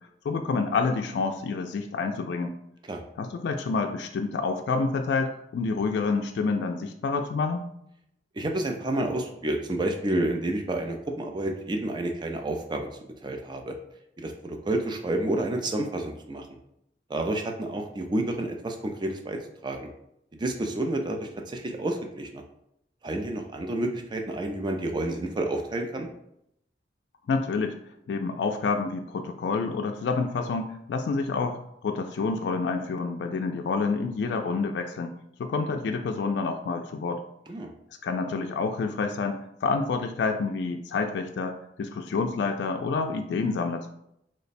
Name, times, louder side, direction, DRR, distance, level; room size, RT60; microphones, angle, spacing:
voice 1, 0.2-2.5 3.2-7.6 27.3-27.8 28.1-35.1 35.4-37.2 38.0-43.9, left 4 dB, 70° left, 5 dB, 0.3 m, -28 dB
voice 2, 8.4-12.9 13.2-13.8 14.2-16.5 17.1-19.9 20.4-22.4 23.0-26.1 37.5-37.7, right 1 dB, 25° right, 3 dB, 0.4 m, -30 dB
3.1 x 2.1 x 4.1 m, 0.77 s
head